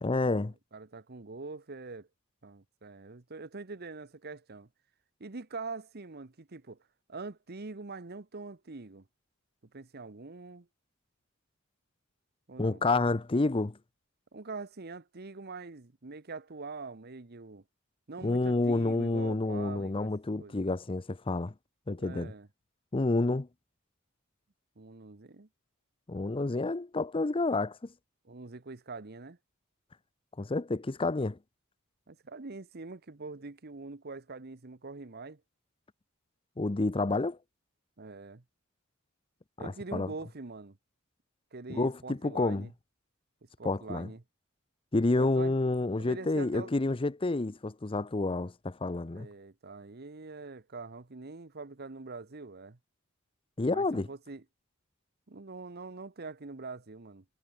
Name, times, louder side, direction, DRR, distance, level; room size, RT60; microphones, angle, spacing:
voice 1, 0.0-0.5 12.6-13.8 18.2-21.5 21.9-22.3 22.9-23.5 26.1-27.8 30.4-31.4 36.6-37.4 39.6-40.1 41.7-42.7 43.6-44.1 44.9-49.3 53.6-54.1, left 2 dB, 25° left, 0.6 m, -29 dB
voice 2, 0.7-2.1 2.4-4.7 5.2-6.8 7.1-9.1 9.7-10.7 12.5-12.8 14.3-17.6 18.1-20.1 20.4-20.6 22.0-22.5 24.8-25.5 28.2-29.4 32.1-35.4 38.0-38.4 39.6-40.8 41.5-42.7 43.6-44.2 45.2-45.5 46.0-46.7 49.1-52.8 53.7-54.4 55.3-57.2, right 3 dB, 50° right, 1.1 m, -44 dB
head